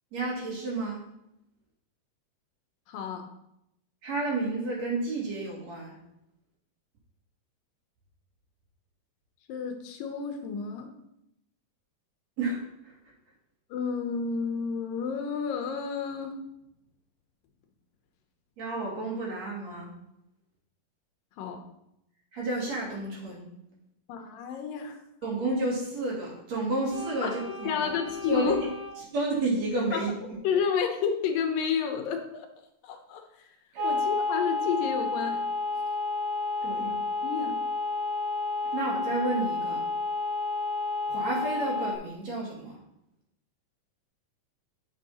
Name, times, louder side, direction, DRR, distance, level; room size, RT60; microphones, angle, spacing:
voice 1, 0.1-1.0 4.0-6.0 12.4-13.0 18.6-19.9 22.3-23.5 25.2-27.9 28.3-28.6 29.1-30.1 33.7-33.9 36.6-36.9 38.7-39.8 41.1-42.8, right 2 dB, 50° right, -3 dB, 3.6 m, -31 dB
voice 2, 2.9-3.3 9.5-10.9 13.7-16.4 21.4-21.6 24.1-25.0 27.2-27.3 27.6-28.6 29.9-30.0 30.4-32.5 32.8-33.5 33.8-35.4 36.8-37.6, left 6 dB, 85° left, 5 dB, 2.7 m, -31 dB
sound 1, 26.9-28.9 33.8-42.0, left 3 dB, 75° right, 3.4 m, -31 dB
9.7 x 6.5 x 4.2 m, 0.81 s
omnidirectional pair, 3.9 m